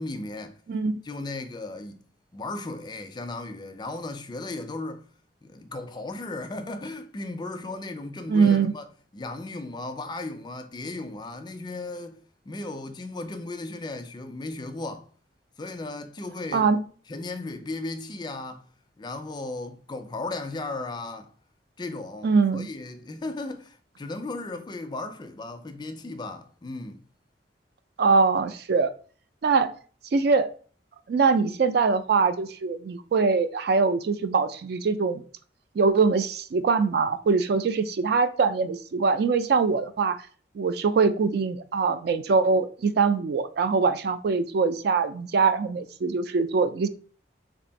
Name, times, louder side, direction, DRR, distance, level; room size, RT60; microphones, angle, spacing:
voice 1, 0.0-0.6 1.0-2.0 2.3-5.0 5.4-8.8 9.1-12.2 12.5-15.1 15.6-16.7 17.1-18.7 19.0-21.3 21.8-27.0, left 2 dB, 25° left, 0.4 m, -36 dB
voice 2, 8.3-8.7 16.5-16.8 22.2-22.7 28.0-28.9 29.4-29.7 30.1-30.5 31.1-35.2 35.8-40.2 40.6-46.9, right 4 dB, 60° right, 0.3 m, -23 dB
3.4 x 2.5 x 4.0 m
head